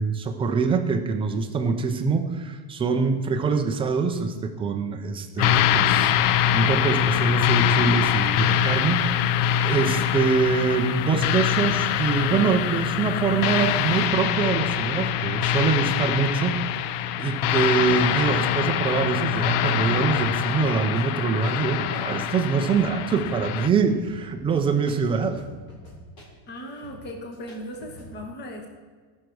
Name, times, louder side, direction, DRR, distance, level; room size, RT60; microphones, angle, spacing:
voice 1, 0.0-9.1 9.6-25.4, right 5 dB, 15° right, 5 dB, 0.3 m, -24 dB
sound 1, 5.4-23.7, left 9 dB, 85° left, 0.7 m, -24 dB
sound 2, 17.9-28.1, left 1 dB, 40° left, 4.0 m, -47 dB
voice 2, 26.5-28.7, equal, 20° left, 2 dB, 1.4 m, -37 dB
18.5 x 6.4 x 4.7 m, 1.5 s
cardioid pair, 160°, 46 cm